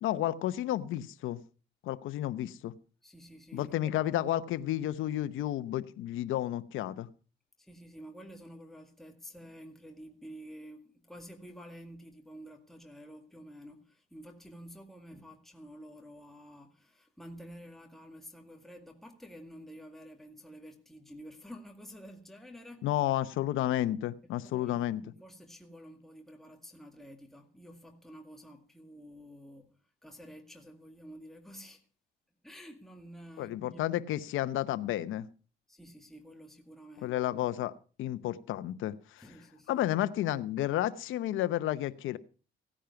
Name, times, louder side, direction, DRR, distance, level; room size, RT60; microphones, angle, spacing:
voice 1, 0.0-1.4 1.8-2.7 3.5-7.1 22.8-25.0 33.4-35.3 37.0-37.7 38.0-39.2 39.7-42.2, left 13 dB, 85° left, 0.9 m, -31 dB
voice 2, 3.0-4.3 7.6-22.9 24.2-29.7 30.0-31.8 32.4-34.0 35.7-37.5 39.2-39.8, equal, ahead, 2.0 m, -50 dB
16.5 x 10.0 x 5.8 m
cardioid pair, 90°, 20 cm